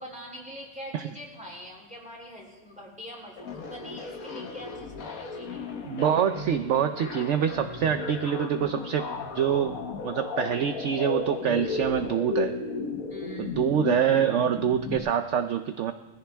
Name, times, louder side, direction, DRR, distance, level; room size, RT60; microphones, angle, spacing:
voice 1, 0.0-5.6 13.1-13.6, equal, 5° right, -3 dB, 3.5 m, -44 dB
sound 1, 3.4-15.0, left 4 dB, 85° left, 1.7 m, -35 dB
voice 2, 5.8-9.1 9.3-9.8 10.0-12.5 13.4-15.9, right 8 dB, 65° right, 9 dB, 0.9 m, -25 dB
21.0 x 15.5 x 3.5 m, 1.2 s
omnidirectional pair, 1.4 m